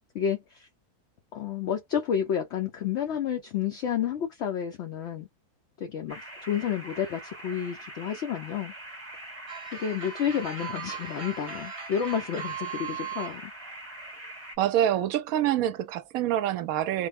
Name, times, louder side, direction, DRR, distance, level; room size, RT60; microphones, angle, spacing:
voice 1, 0.1-0.7 1.3-5.3 5.8-8.7 9.7-13.5, left 8 dB, 65° left, 0.7 m, -30 dB
sound 1, 6.1-14.6, right 1 dB, 10° right, 0.9 m, -43 dB
sound 2, 9.5-13.4, right 8 dB, 35° right, 0.5 m, -39 dB
voice 2, 14.6-17.1, right 11 dB, 70° right, 1.0 m, -26 dB
3.5 x 2.1 x 3.4 m
omnidirectional pair, 1.6 m